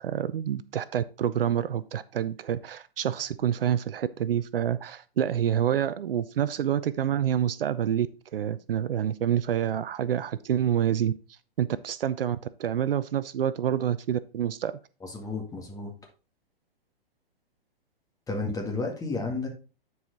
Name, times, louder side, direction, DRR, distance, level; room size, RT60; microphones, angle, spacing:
voice 1, 0.0-8.1 8.3-11.1 11.6-14.7, right 9 dB, 70° right, 0.6 m, -27 dB
voice 2, 15.0-15.9 18.3-19.5, left 3 dB, 10° left, 2.0 m, -32 dB
9.8 x 4.8 x 4.0 m
hypercardioid pair, 125°, 30 cm